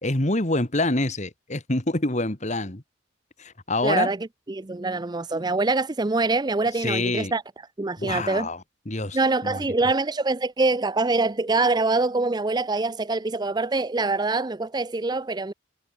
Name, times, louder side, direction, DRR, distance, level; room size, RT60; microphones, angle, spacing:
voice 1, 0.0-2.8 3.4-4.1 6.7-7.3 8.0-9.7, left 2 dB, 35° left, 2.1 m, -26 dB
voice 2, 3.8-4.2 4.5-7.4 7.8-8.5 9.1-15.5, right 3 dB, 20° right, 0.5 m, -24 dB
head